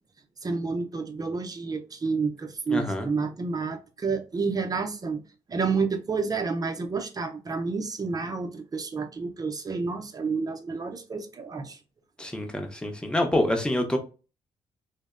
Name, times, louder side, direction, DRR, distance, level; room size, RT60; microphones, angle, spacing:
voice 1, 0.4-5.2 5.5-11.8, right 4 dB, 30° right, 0.5 m, -30 dB
voice 2, 2.7-3.1 12.2-14.0, left 1 dB, 5° left, 0.7 m, -26 dB
2.6 x 2.1 x 2.4 m
supercardioid pair, 60°, 12 cm